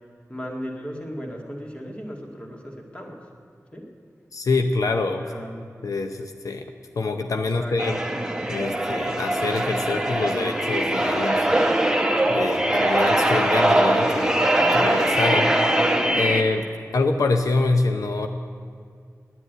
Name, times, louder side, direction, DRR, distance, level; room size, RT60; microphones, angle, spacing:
voice 1, 0.3-3.2 3.7-3.9 5.2-5.6 7.3-7.8, equal, 20° left, 0 dB, 1.9 m, -36 dB
voice 2, 4.3-5.3 5.8-6.6 7.0-8.0 8.5-11.5 12.3-14.4 14.7-15.5 16.1-16.7 16.9-18.3, left 3 dB, 80° left, 6 dB, 0.6 m, -25 dB
sound 1, 7.8-16.4, right 1 dB, 10° right, 1.1 m, -21 dB
9.8 x 9.8 x 9.2 m, 2.2 s
wide cardioid pair, 85°, 6 cm